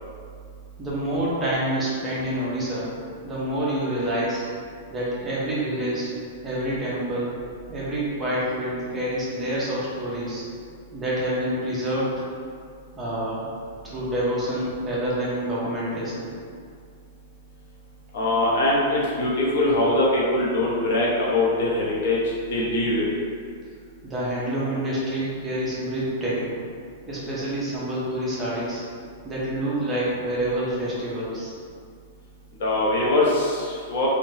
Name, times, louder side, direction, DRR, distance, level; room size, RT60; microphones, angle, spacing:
voice 1, 0.8-2.9 3.2-4.4 4.9-6.1 6.4-7.3 7.7-10.4 10.9-12.2 13.0-13.5 13.8-16.3 24.0-26.6 27.1-28.8 29.2-31.5, right 1 dB, 10° right, -8 dB, 0.5 m, -27 dB
voice 2, 18.1-22.2 22.5-23.0 32.6-34.1, left 2 dB, 55° left, -4 dB, 0.7 m, -22 dB
3.2 x 2.1 x 2.7 m, 2.2 s
supercardioid pair, 165°, 0 cm